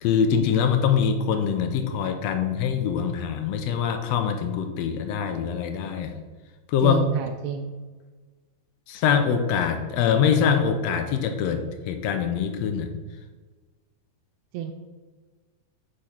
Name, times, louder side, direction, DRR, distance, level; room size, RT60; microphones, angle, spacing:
voice 1, 0.0-6.2 6.7-7.0 8.9-12.9, left 7 dB, 75° left, 6 dB, 1.7 m, -24 dB
voice 2, 6.8-7.7 13.0-13.1 14.5-14.7, right 8 dB, 80° right, 5 dB, 1.7 m, -29 dB
8.7 x 3.2 x 5.6 m, 1.3 s
omnidirectional pair, 3.3 m